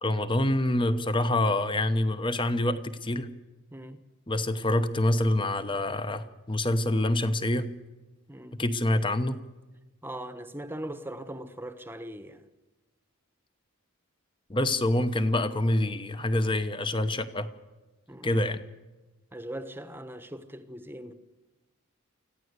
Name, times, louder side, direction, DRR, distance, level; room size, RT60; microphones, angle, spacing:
voice 1, 0.0-3.3 4.3-7.7 8.6-9.4 14.5-17.5 18.2-18.6, left 1 dB, 20° left, 1.0 m, -26 dB
voice 2, 3.7-4.0 8.3-8.6 10.0-12.5 18.1-18.3 19.3-21.1, right 1 dB, 10° right, 1.1 m, -40 dB
25.0 x 15.5 x 8.1 m
head